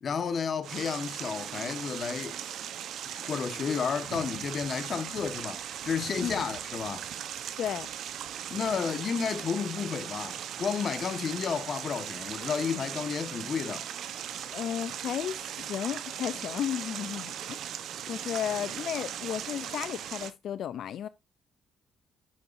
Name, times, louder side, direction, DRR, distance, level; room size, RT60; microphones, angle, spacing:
voice 1, 0.0-2.4 3.0-7.1 8.5-13.9, left 6 dB, 50° left, 1.2 m, -32 dB
sound 1, 0.6-20.3, right 10 dB, 75° right, 0.8 m, -38 dB
voice 2, 7.6-7.9 14.5-17.6 18.0-21.1, left 10 dB, 70° left, 0.3 m, -33 dB
7.6 x 6.9 x 2.5 m
cardioid pair, 90°, 0 cm